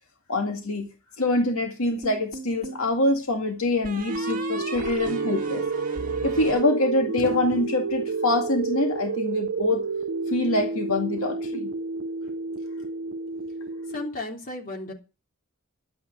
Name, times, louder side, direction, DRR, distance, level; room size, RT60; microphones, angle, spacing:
voice 1, 0.3-0.9 1.2-5.7 6.2-9.9 10.3-11.7, left 2 dB, 85° left, 3 dB, 2.2 m, -25 dB
sound 1, 2.0-2.9 3.8-7.3, right 2 dB, 40° right, 2.3 m, -37 dB
sound 2, 4.1-14.1, right 4 dB, 70° right, 0.8 m, -30 dB
voice 2, 13.9-14.9, left 2 dB, 40° left, 2 dB, 3.3 m, -34 dB
11.5 x 9.6 x 6.7 m, 0.31 s
head